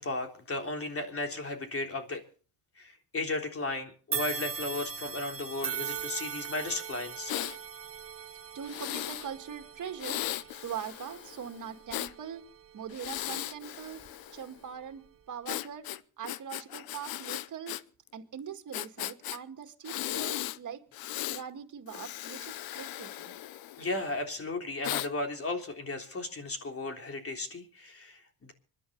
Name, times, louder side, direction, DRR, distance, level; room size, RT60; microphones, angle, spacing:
voice 1, 0.0-2.2 2.8-7.3 23.8-28.2, left 2 dB, 40° left, 4 dB, 3.5 m, -35 dB
sound 1, 4.1-13.4 13.9-14.1 15.1-15.2, right 7 dB, 40° right, 1.4 m, -40 dB
Breathing, 7.3-7.6 8.6-9.3 10.0-12.1 12.9-14.5 15.5-17.8 18.1-18.2 18.7-19.4 19.8-20.6 20.9-21.4 21.9-24.0 24.8-25.1, left 14 dB, 75° left, 0.8 m, -37 dB
voice 2, 8.5-12.5 12.7-14.0 14.3-17.8 18.1-20.8 21.3-23.3, right 8 dB, 55° right, 7 dB, 2.1 m, -42 dB
25.0 x 11.0 x 4.0 m, 0.41 s
supercardioid pair, 70°, 36 cm